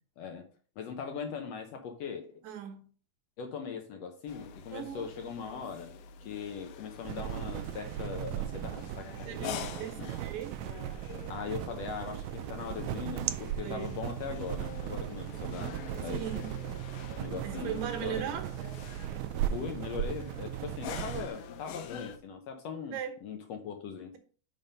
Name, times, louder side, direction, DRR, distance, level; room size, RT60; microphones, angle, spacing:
voice 1, 0.2-0.5 0.8-2.4 3.4-5.9 6.2-9.6 10.0-10.1 11.3-16.6 17.2-18.4 19.5-24.1, left 6 dB, 70° left, 1.6 m, -40 dB
voice 2, 2.4-2.9 4.7-5.1 9.2-10.6 13.6-13.9 16.1-16.6 17.4-18.5 22.9-23.2, right 9 dB, 70° right, 2.3 m, -38 dB
sound 1, 4.3-22.2, left 7 dB, 90° left, 2.3 m, -46 dB
sound 2, 7.0-21.3, right 12 dB, 85° right, 1.6 m, -37 dB
5.7 x 5.4 x 5.2 m
omnidirectional pair, 3.7 m